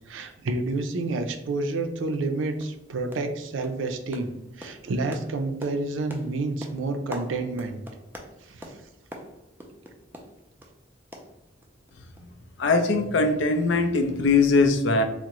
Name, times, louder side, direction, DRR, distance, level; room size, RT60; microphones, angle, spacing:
voice 1, 0.0-4.3 4.6-7.8 8.4-8.8, right 2 dB, 85° right, 6 dB, 0.4 m, -29 dB
sound 1, 2.1-2.3 2.6-2.8 3.1-3.4 3.6-10.8 11.1-11.9 12.2-12.3 12.6-12.7, equal, 10° right, 0.3 m, -44 dB
voice 2, 12.6-15.0, left 3 dB, 70° left, 6 dB, 0.4 m, -21 dB
3.6 x 2.1 x 2.9 m, 0.90 s
head